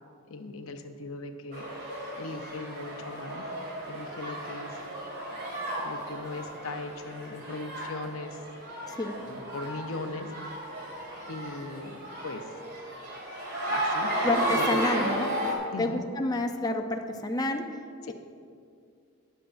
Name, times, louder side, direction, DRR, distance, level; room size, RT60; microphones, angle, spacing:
voice 1, 0.3-1.7 2.2-3.5 3.9-4.8 5.8-8.4 9.2-10.3 10.6-11.0 11.3-12.5 13.7-14.1 14.5-14.8 15.7-16.0 18.0-18.1, left 3 dB, 75° left, 7 dB, 0.7 m, -39 dB
sound 1, 1.5-15.5, right 1 dB, 50° right, 2.1 m, -34 dB
voice 2, 8.9-9.2 14.2-17.7 18.1-18.2, left 2 dB, 20° left, 4 dB, 0.5 m, -29 dB
19.0 x 6.9 x 2.6 m, 2.4 s
head